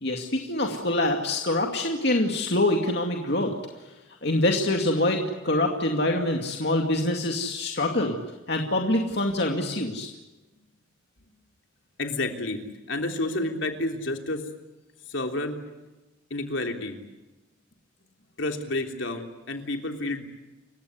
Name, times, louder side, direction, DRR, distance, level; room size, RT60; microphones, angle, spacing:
voice 1, 0.0-3.9 4.2-8.2 8.5-10.1, left 1 dB, 55° left, 2 dB, 2.4 m, -25 dB
voice 2, 12.0-14.4 15.1-15.6 16.3-17.0 18.4-20.3, left 2 dB, 75° left, 4 dB, 3.4 m, -30 dB
30.0 x 16.0 x 9.7 m, 1.1 s
head